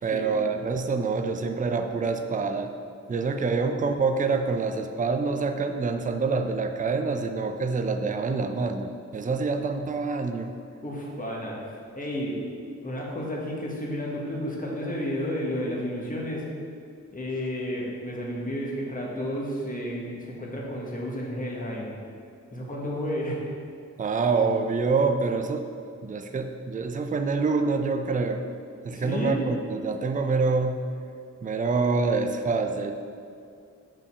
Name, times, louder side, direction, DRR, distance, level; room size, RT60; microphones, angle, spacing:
voice 1, 0.0-2.7 3.1-10.5 24.0-25.7 26.0-28.5 28.8-30.8 31.4-32.9, right 4 dB, 30° right, 6 dB, 0.4 m, -26 dB
voice 2, 10.8-11.5 11.9-12.4 12.8-16.4 17.1-21.9 22.5-23.4 28.9-29.4, equal, 30° left, -3 dB, 1.5 m, -31 dB
5.5 x 5.2 x 6.7 m, 2.4 s
wide cardioid pair, 125°, 29 cm